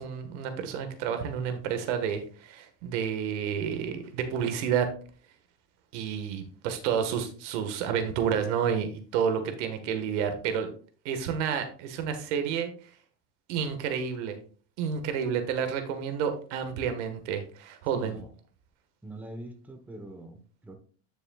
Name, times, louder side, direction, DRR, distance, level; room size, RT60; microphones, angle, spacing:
voice 1, 0.0-4.9 5.9-10.7 11.0-12.7 13.5-14.4 14.8-18.2, right 7 dB, 75° right, 7 dB, 1.6 m, -30 dB
voice 2, 17.9-18.3 19.0-20.8, right 1 dB, 5° right, 4 dB, 1.0 m, -43 dB
10.0 x 6.5 x 2.4 m, 0.42 s
supercardioid pair, 140°, 36 cm